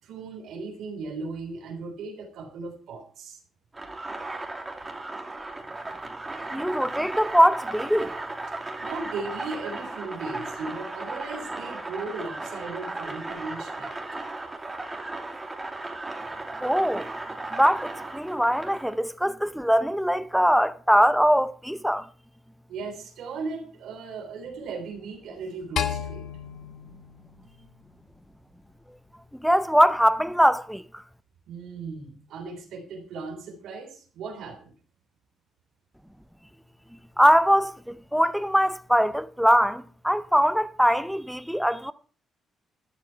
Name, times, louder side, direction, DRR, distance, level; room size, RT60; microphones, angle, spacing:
voice 1, 0.0-3.4 8.8-14.0 22.7-26.2 31.5-34.7, right 4 dB, 80° right, 3.3 m, -37 dB
sound 1, 3.7-18.9, right 2 dB, 15° right, 2.7 m, -36 dB
voice 2, 6.5-8.1 16.6-17.1 17.5-22.0 29.4-30.8 37.2-41.9, equal, ahead, 0.7 m, -22 dB
sound 2, 25.8-28.1, left 8 dB, 70° left, 1.3 m, -33 dB
13.0 x 11.0 x 4.5 m
cardioid pair, 90°, 0 cm